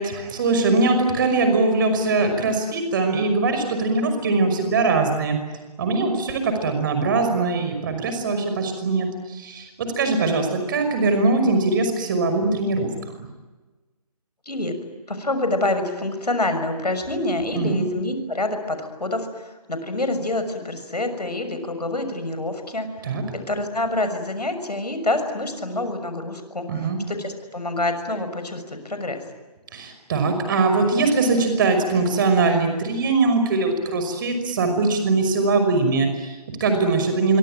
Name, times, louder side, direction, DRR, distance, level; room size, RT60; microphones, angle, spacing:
voice 1, 0.0-5.4 5.8-12.9 13.2-13.3 17.6-17.8 23.0-23.2 26.7-27.0 29.7-37.4, right 3 dB, 30° right, 7 dB, 5.6 m, -21 dB
voice 2, 15.1-29.2, left 2 dB, 80° left, 8 dB, 6.3 m, -27 dB
26.0 x 24.0 x 9.1 m, 1.2 s
figure-of-eight pair, 150°, 20 cm